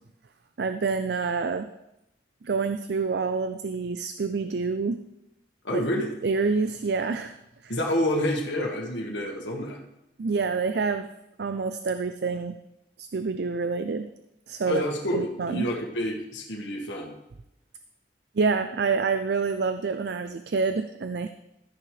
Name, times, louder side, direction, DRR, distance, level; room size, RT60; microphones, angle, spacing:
voice 1, 0.6-1.7 2.4-5.0 5.7-5.8 6.2-7.4 7.6-7.8 10.2-11.1 11.4-12.6 13.0-14.1 14.5-14.8 15.1-15.7 18.3-21.3, right 4 dB, 65° right, 9 dB, 0.4 m, -27 dB
voice 2, 5.6-6.1 7.7-9.8 14.7-17.2, left 1 dB, 85° left, -1 dB, 1.8 m, -28 dB
13.5 x 9.6 x 3.3 m, 0.86 s
head